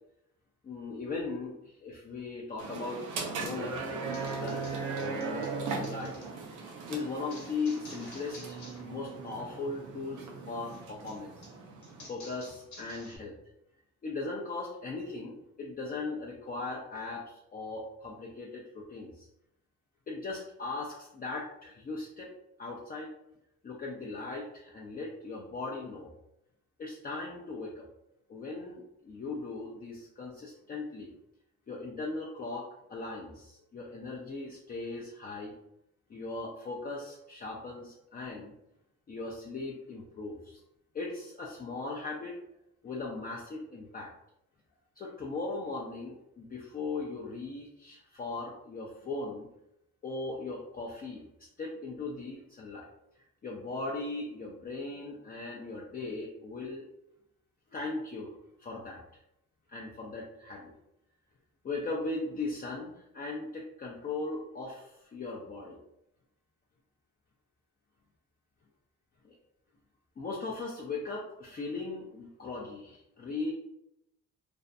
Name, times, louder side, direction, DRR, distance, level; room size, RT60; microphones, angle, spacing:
voice 1, 0.6-11.3 12.1-13.4 14.0-19.3 20.1-22.3 22.6-23.1 23.6-26.1 26.8-27.9 28.3-31.1 31.7-35.5 36.1-38.5 39.1-40.6 40.9-42.4 42.8-44.1 45.0-49.5 50.0-52.9 53.4-56.9 57.7-58.3 58.6-59.0 59.7-60.7 61.6-65.8 69.2-69.4 70.2-73.5, left 3 dB, 30° left, -3 dB, 0.4 m, -38 dB
sound 1, 2.6-12.1, right 4 dB, 90° right, 0.6 m, -38 dB
sound 2, 4.1-6.3 7.3-8.9 9.1-9.6 10.7-13.2, left 2 dB, 70° left, 0.9 m, -52 dB
2.5 x 2.1 x 2.5 m, 0.81 s
cardioid pair, 90°, 30 cm